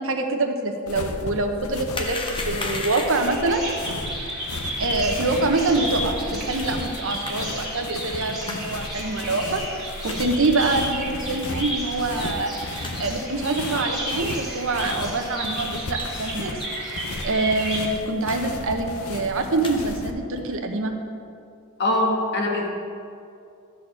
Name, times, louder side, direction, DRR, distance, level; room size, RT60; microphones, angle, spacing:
voice 1, 0.0-2.2 2.5-3.6 4.8-12.5 13.0-16.6 17.2-21.0, right 2 dB, 60° right, 4 dB, 0.9 m, -25 dB
sound 1, 0.9-20.1, left 2 dB, 70° left, 0.7 m, -35 dB
sound 2, 1.9-3.4 6.6-6.7 7.2-7.3 8.4-8.6 9.2-9.3 10.0-10.2 10.6-10.9 11.4-11.5 12.1-12.2 12.4-12.5 12.8-12.9 13.5-13.6 14.2-14.4 14.9-15.1 15.5-16.1 16.7-16.9 17.2-17.3 17.5-17.7 18.2-18.4 18.6-19.0 19.4-19.7 20.3-20.6, left 2 dB, 25° left, 0.8 m, -35 dB
Bird vocalization bird call bird song, 3.1-17.9, right 1 dB, ahead, 2.1 m, -33 dB
voice 2, 21.8-22.7, left 1 dB, 50° left, 1 dB, 1.3 m, -22 dB
12.5 x 4.3 x 6.8 m, 2.5 s
head